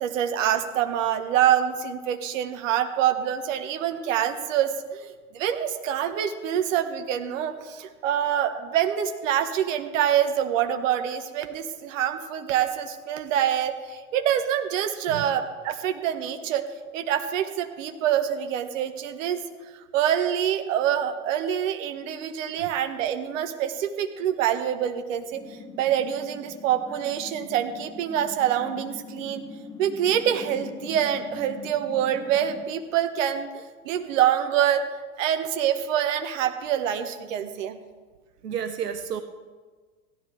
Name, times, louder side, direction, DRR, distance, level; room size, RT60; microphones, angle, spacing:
voice 1, 0.0-16.6 16.9-19.4 19.9-29.4 29.8-34.9 35.2-37.8, right 10 dB, 55° right, 8 dB, 1.2 m, -26 dB
sound 1, 25.3-32.7, left 4 dB, 5° left, 0.9 m, -42 dB
voice 2, 38.4-39.2, right 8 dB, 85° right, 10 dB, 0.7 m, -31 dB
16.5 x 12.0 x 3.4 m, 1.4 s
figure-of-eight pair, 90°, 46 cm